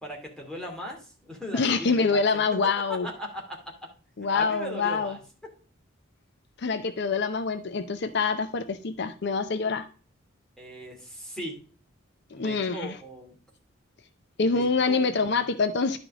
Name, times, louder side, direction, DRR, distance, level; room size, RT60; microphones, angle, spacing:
voice 1, 0.0-2.4 2.9-3.6 4.3-5.2 10.6-11.6 12.4-13.4 14.4-15.3, equal, 5° left, -1 dB, 2.5 m, -38 dB
voice 2, 1.5-3.1 4.2-5.2 6.6-9.9 12.3-13.0 14.4-16.0, left 4 dB, 60° left, 11 dB, 0.6 m, -26 dB
11.0 x 5.1 x 3.6 m, 0.40 s
head